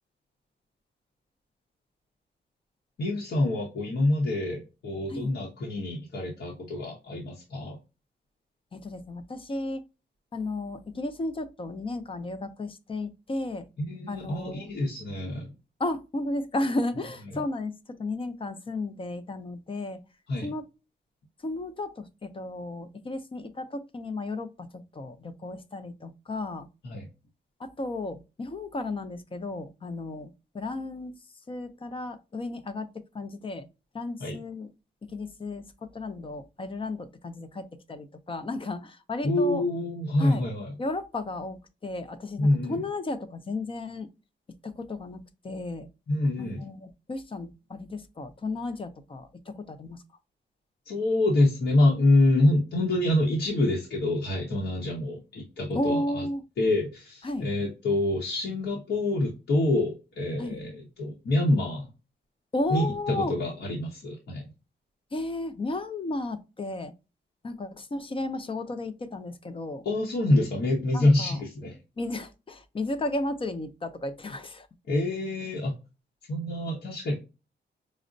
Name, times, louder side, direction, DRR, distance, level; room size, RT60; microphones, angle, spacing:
voice 1, 3.0-7.8 13.8-15.5 17.3-17.4 20.3-20.5 26.8-27.1 34.2-34.4 39.2-40.7 42.4-42.8 46.1-46.7 50.9-56.3 56.6-61.9 62.7-64.4 69.8-71.8 74.9-75.7 76.3-77.1, left 1 dB, 65° left, 0.9 m, -26 dB
voice 2, 8.7-9.8 10.3-13.7 14.1-14.7 15.8-20.0 20.4-20.6 21.4-26.7 27.6-31.2 31.5-32.9 33.1-33.7 33.9-34.7 35.1-39.6 40.2-40.4 40.8-44.1 44.6-45.9 46.4-50.0 55.7-56.4 57.2-57.5 60.4-60.6 62.5-63.3 65.1-66.9 67.4-69.8 70.9-71.4 72.0-74.7, left 2 dB, 30° left, 0.5 m, -34 dB
5.0 x 2.1 x 2.5 m
wide cardioid pair, 110°, 19 cm